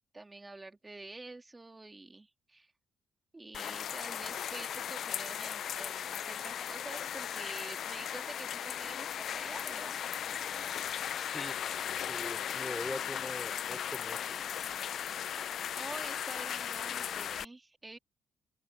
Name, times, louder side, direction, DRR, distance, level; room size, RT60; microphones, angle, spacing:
voice 1, 0.0-2.7 3.3-10.0 15.3-15.4 15.7-18.0, right 2 dB, 20° right, 2.4 m, -47 dB
sound 1, 3.5-17.4, left 9 dB, 65° left, 0.6 m, -37 dB
voice 2, 11.1-11.6 12.0-14.7, left 1 dB, 10° left, 4.0 m, -43 dB
open air
cardioid pair, 90°, 0 cm